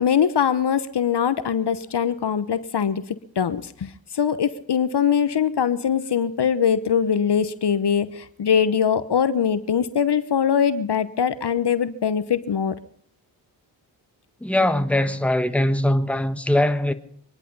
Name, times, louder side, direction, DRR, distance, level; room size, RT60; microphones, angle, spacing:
voice 1, 0.0-12.7, left 7 dB, 60° left, 1.1 m, -22 dB
voice 2, 14.4-16.9, left 1 dB, 5° left, 1.5 m, -21 dB
24.5 x 10.5 x 5.5 m
cardioid pair, 40°, 46 cm